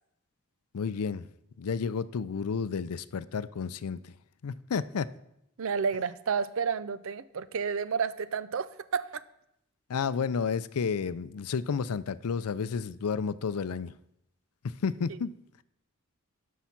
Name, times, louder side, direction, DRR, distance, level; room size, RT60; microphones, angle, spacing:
voice 1, 0.7-1.3 1.6-4.1 4.4-5.1 9.9-13.9 14.6-15.3, left 6 dB, 90° left, 16 dB, 0.5 m, -31 dB
voice 2, 5.6-9.2, right 6 dB, 65° right, 16 dB, 0.5 m, -31 dB
12.0 x 5.6 x 5.8 m, 0.79 s
head